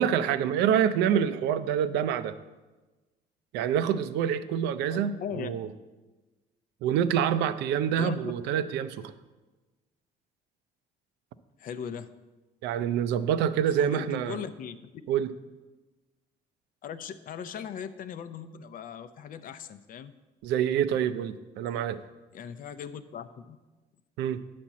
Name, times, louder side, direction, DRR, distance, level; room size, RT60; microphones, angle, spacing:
voice 1, 0.0-2.4 3.5-5.7 6.8-9.1 12.6-14.4 15.1-15.3 20.4-22.0 24.2-24.4, right 9 dB, 85° right, 13 dB, 0.5 m, -26 dB
voice 2, 4.9-5.5 8.0-8.2 11.6-12.1 13.7-15.0 16.8-20.1 22.3-23.6, left 7 dB, 55° left, 12 dB, 0.6 m, -39 dB
9.1 x 4.3 x 7.3 m, 1.2 s
cardioid pair, 110°, 17 cm